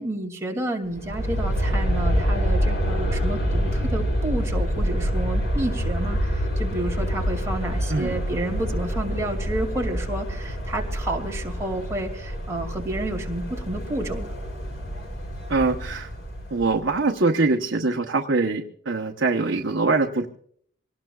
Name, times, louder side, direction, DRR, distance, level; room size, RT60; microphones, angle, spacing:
voice 1, 0.0-14.3, right 1 dB, 15° right, 1 dB, 2.4 m, -30 dB
Aircraft, 0.9-16.9, equal, 65° left, 3.3 m, -26 dB
voice 2, 15.5-16.1 16.5-20.3, right 3 dB, 60° right, 3 dB, 0.9 m, -23 dB
25.5 x 18.5 x 2.4 m, 0.62 s
head